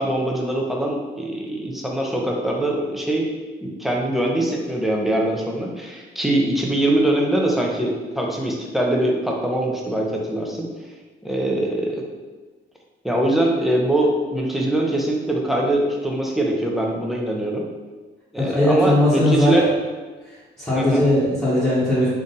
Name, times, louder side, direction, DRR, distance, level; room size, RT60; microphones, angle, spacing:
voice 1, 0.0-3.3 3.6-10.7 11.2-12.0 13.0-17.6 18.3-19.7 20.7-21.0, right 1 dB, ahead, -1 dB, 0.7 m, -22 dB
voice 2, 18.4-19.5 20.2-22.1, left 1 dB, 15° left, -11 dB, 1.4 m, -19 dB
3.9 x 2.5 x 4.0 m, 1.3 s
cardioid pair, 90°, 20 cm